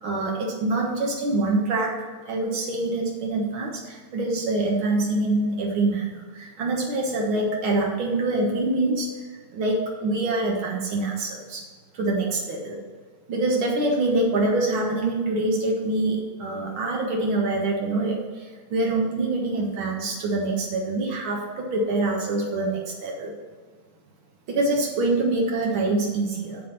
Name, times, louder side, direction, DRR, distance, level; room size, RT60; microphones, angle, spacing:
voice 1, 0.0-1.9 2.2-9.1 9.5-11.6 11.9-12.8 13.3-18.2 18.7-23.3 24.5-26.6, right 2 dB, 80° right, -1 dB, 1.1 m, -25 dB
8.5 x 5.8 x 5.8 m, 1.5 s
omnidirectional pair, 4.4 m